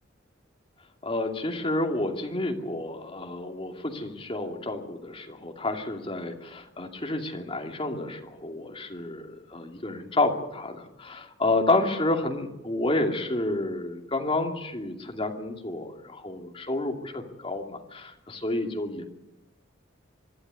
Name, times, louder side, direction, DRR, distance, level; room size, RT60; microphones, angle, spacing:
voice 1, 1.0-19.0, left 2 dB, 25° left, 2 dB, 2.6 m, -30 dB
25.5 x 12.0 x 9.5 m, 0.94 s
head